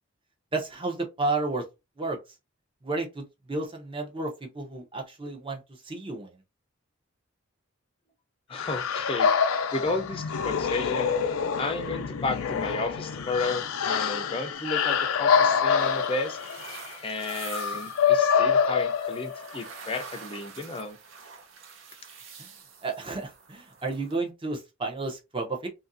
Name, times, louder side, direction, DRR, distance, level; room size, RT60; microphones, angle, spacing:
voice 1, 0.5-1.6 2.0-2.2 2.8-6.4 22.4-22.5 22.8-25.7, right 3 dB, 25° right, 0.6 m, -32 dB
sound 1, 8.5-19.6, left 6 dB, 80° left, 0.4 m, -26 dB
voice 2, 8.5-11.2 11.6-16.4 17.0-21.0, left 3 dB, 25° left, 0.5 m, -33 dB
sound 2, 14.5-24.2, right 5 dB, 65° right, 0.7 m, -47 dB
2.7 x 2.5 x 2.6 m
head